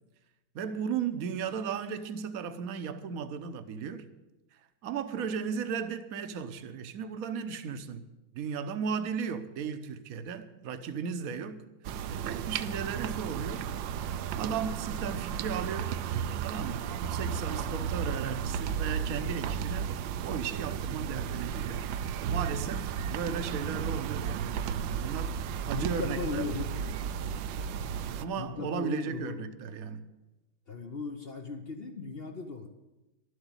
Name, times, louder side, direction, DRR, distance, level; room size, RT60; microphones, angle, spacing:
voice 1, 0.5-4.1 4.8-8.1 8.3-11.6 12.2-13.7 14.4-16.0 16.4-19.9 20.2-21.9 22.3-26.5 28.2-30.0, right 6 dB, 55° right, 1.1 m, -35 dB
sound 1, 11.8-28.2, right 8 dB, 75° right, 1.2 m, -34 dB
voice 2, 25.7-26.8 28.4-29.5 30.7-32.7, left 4 dB, 55° left, 0.6 m, -37 dB
12.0 x 8.0 x 9.7 m
omnidirectional pair, 2.3 m